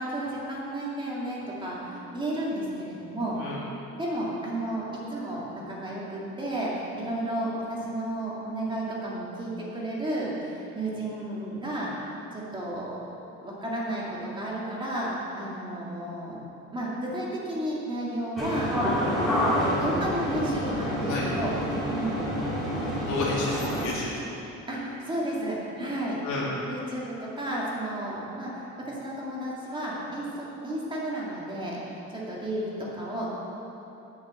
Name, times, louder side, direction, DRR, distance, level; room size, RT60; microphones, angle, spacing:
voice 1, 0.0-3.4 4.0-11.9 12.3-13.1 13.4-16.4 16.7-18.7 19.2-21.5 21.9-22.2 24.7-26.2 26.7-33.3, right 1 dB, 15° right, -5 dB, 2.1 m, -32 dB
sound 1, 18.4-23.9, equal, ahead, 2.5 m, -28 dB
voice 2, 23.0-24.2 26.2-26.6, left 3 dB, 90° left, -5 dB, 2.9 m, -30 dB
9.4 x 6.7 x 8.2 m, 3.0 s
cardioid pair, 160°, 29 cm